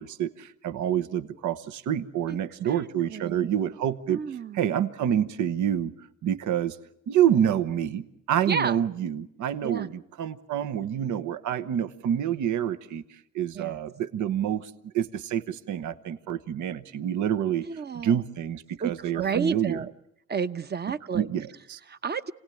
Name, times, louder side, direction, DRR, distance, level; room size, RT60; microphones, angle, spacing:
voice 1, 0.0-4.2 4.5-5.9 6.2-6.8 7.1-17.7 18.0-19.8 21.1-21.8, right 10 dB, 75° right, 12 dB, 1.0 m, -27 dB
voice 2, 2.6-3.7 4.1-4.7 8.5-8.8 9.6-9.9 13.5-13.7 17.6-18.2 18.8-19.9 20.3-21.3 21.9-22.3, right 6 dB, 35° right, 12 dB, 0.9 m, -31 dB
26.5 x 18.0 x 9.0 m, 0.81 s
cardioid pair, 90°, 30 cm